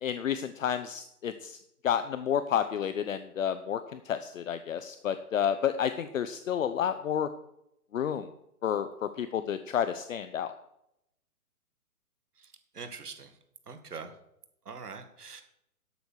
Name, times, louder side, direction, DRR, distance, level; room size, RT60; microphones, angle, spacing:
voice 1, 0.0-7.3 7.9-8.3 8.6-10.5, left 9 dB, 60° left, 11 dB, 0.9 m, -30 dB
voice 2, 12.7-13.3 13.7-14.1 14.7-15.4, right 5 dB, 80° right, 8 dB, 2.1 m, -43 dB
12.5 x 8.3 x 6.5 m, 0.81 s
hypercardioid pair, 135°, 45 cm